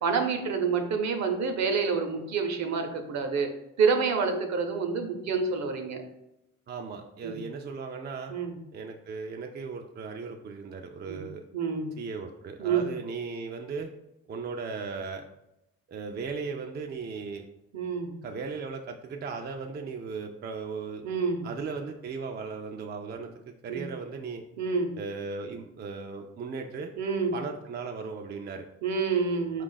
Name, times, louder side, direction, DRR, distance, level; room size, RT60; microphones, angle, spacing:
voice 1, 0.0-3.5 3.8-6.0 7.2-7.4 8.3-8.6 11.1-11.2 11.5-11.9 12.6-12.9 17.7-18.1 21.0-21.5 23.7-23.8 24.6-24.9 27.0-27.4 28.8-29.6, right 5 dB, 65° right, 5 dB, 0.8 m, -28 dB
voice 2, 6.7-8.3 8.7-11.4 12.0-13.9 14.3-15.3 15.9-17.5 18.2-21.0 21.4-24.4 25.0-26.9 27.3-28.7 29.5-29.6, right 5 dB, 35° right, 3 dB, 0.4 m, -37 dB
4.6 x 2.4 x 3.9 m, 0.87 s
cardioid pair, 90°, 30 cm